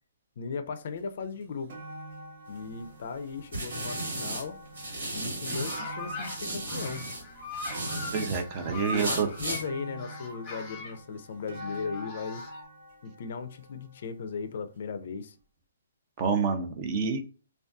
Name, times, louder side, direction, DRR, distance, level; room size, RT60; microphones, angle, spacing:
voice 1, 0.4-1.8 2.5-4.6 5.1-7.1 8.9-12.4 13.0-15.4, left 5 dB, 50° left, 0.4 m, -37 dB
sound 1, 1.0-1.1 1.4-14.6 15.4-15.5, right 1 dB, 55° right, 0.9 m, -46 dB
sound 2, 2.6-5.8 6.2-8.4 8.8-9.6, right 1 dB, 75° right, 1.3 m, -35 dB
sound 3, 5.2-6.4 6.6-9.6 10.0-11.0 11.5-12.6, left 2 dB, 20° left, 0.7 m, -40 dB
voice 2, 8.1-9.3 16.2-17.2, right 5 dB, 30° right, 0.4 m, -28 dB
2.5 x 2.3 x 2.3 m
hypercardioid pair, 160°, 0 cm